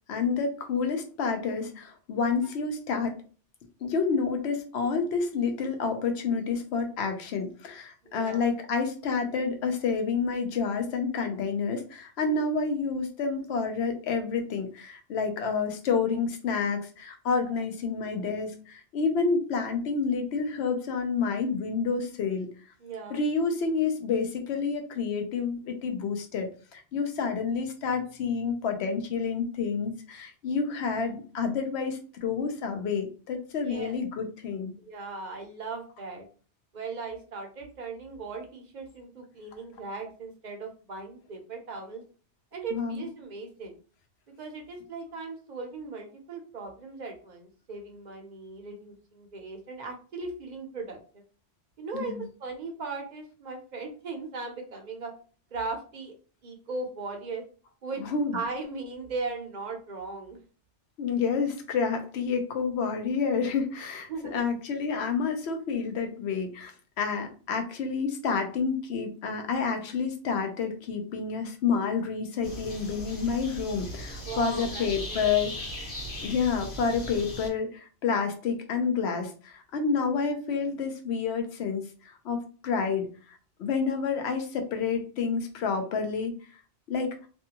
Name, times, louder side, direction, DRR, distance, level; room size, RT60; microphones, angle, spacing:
voice 1, 0.1-3.2 3.8-22.5 23.1-26.5 26.7-34.7 42.7-43.0 51.9-52.2 58.0-58.4 61.0-66.7 67.0-75.5 76.2-83.1 83.6-86.3 86.9-87.1, left 5 dB, 70° left, 5 dB, 0.9 m, -29 dB
voice 2, 8.0-8.4 22.8-23.2 33.7-34.0 34.8-36.2 36.7-42.0 42.5-43.8 44.4-51.0 51.8-55.1 55.5-56.1 56.4-57.4 57.8-58.0 58.3-60.4 64.1-64.4 74.2-75.3, right 3 dB, 50° right, 3 dB, 0.6 m, -38 dB
sound 1, 72.4-77.5, equal, 90° left, 1.3 m, -38 dB
2.6 x 2.3 x 2.8 m, 0.39 s
omnidirectional pair, 1.2 m